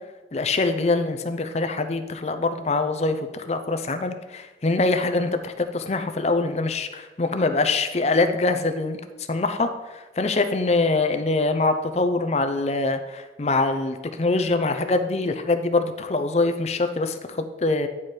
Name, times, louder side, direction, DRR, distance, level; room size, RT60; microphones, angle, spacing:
voice 1, 0.3-9.0 9.3-17.9, left 3 dB, 35° left, 8 dB, 0.5 m, -24 dB
9.8 x 4.8 x 4.4 m, 1.2 s
head